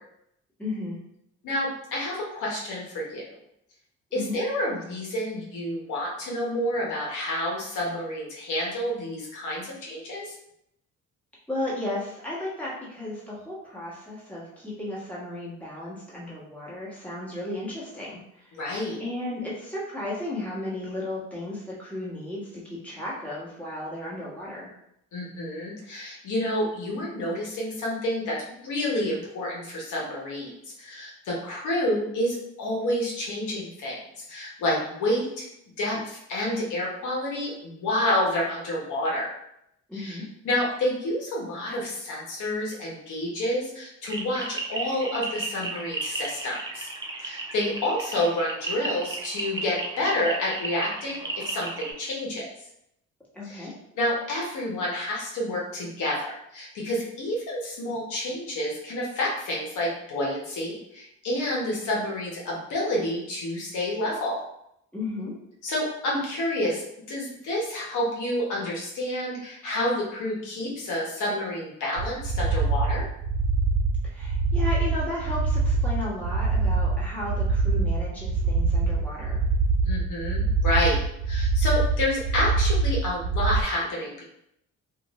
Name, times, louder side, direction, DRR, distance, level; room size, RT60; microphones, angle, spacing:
voice 1, 0.6-1.0 4.1-4.4 11.5-18.6 19.0-24.8 39.9-40.3 53.3-53.7 64.9-65.4 74.1-79.4, left 1 dB, 5° left, -7 dB, 1.3 m, -34 dB
voice 2, 1.4-3.2 4.1-10.4 18.5-19.0 25.1-34.0 34.3-35.4 35.8-39.3 39.9-40.2 40.4-46.9 47.2-52.4 53.4-53.7 54.0-56.3 56.5-64.4 65.6-66.8 67.1-73.0 79.8-81.0 81.3-84.2, left 1 dB, 80° left, -3 dB, 1.0 m, -29 dB
sound 1, 44.0-51.9, right 3 dB, 15° right, 0.5 m, -34 dB
sound 2, 72.0-83.6, right 3 dB, 80° right, 0.5 m, -24 dB
2.5 x 2.5 x 3.0 m, 0.78 s
cardioid pair, 90°, 30 cm